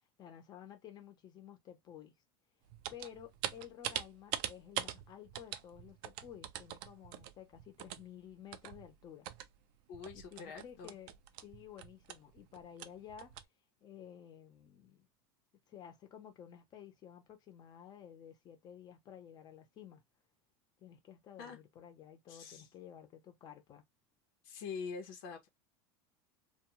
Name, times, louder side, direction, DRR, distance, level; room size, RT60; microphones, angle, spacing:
voice 1, 0.2-2.1 2.9-9.3 10.1-11.1 11.4-13.4 13.8-15.1 15.7-20.0 20.8-23.8, left 9 dB, 35° left, 0.7 m, -53 dB
sound 1, 2.7-9.6 9.9-13.4, right 12 dB, 60° right, 0.4 m, -43 dB
voice 2, 9.9-10.9 21.4-21.6 22.3-22.7 24.4-25.5, left 5 dB, 70° left, 0.8 m, -45 dB
2.3 x 2.2 x 2.9 m
supercardioid pair, 150°, 13 cm